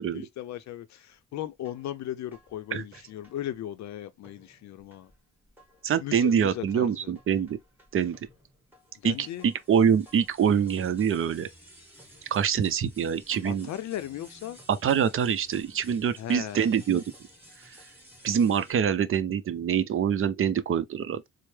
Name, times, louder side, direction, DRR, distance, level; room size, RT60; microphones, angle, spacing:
voice 1, 0.0-5.1 6.0-7.1 9.0-9.5 13.4-14.6 16.2-16.7, left 12 dB, 65° left, 0.5 m, -37 dB
sound 1, 1.5-3.9 4.2-18.7, equal, 5° right, 1.9 m, -55 dB
voice 2, 5.8-7.6 7.9-8.2 9.0-11.5 12.3-13.7 14.7-17.0 17.6-17.7 18.2-21.2, right 8 dB, 45° right, 0.5 m, -25 dB
4.3 x 2.0 x 3.1 m
cardioid pair, 90°, 30 cm